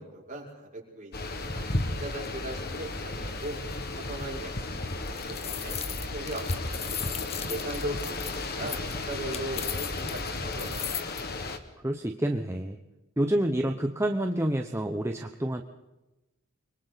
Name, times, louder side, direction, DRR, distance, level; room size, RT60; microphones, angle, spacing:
voice 1, 0.0-3.6 3.9-6.9 7.5-10.9, right 1 dB, 35° right, -3 dB, 6.3 m, -39 dB
sound 1, 1.1-11.6, left 2 dB, 45° left, 1.8 m, -34 dB
sound 2, 4.9-11.2, left 9 dB, 30° left, 1.0 m, -37 dB
voice 2, 11.8-12.8 13.2-15.6, right 1 dB, 10° right, 4 dB, 0.9 m, -28 dB
30.0 x 23.5 x 4.1 m, 1.0 s
head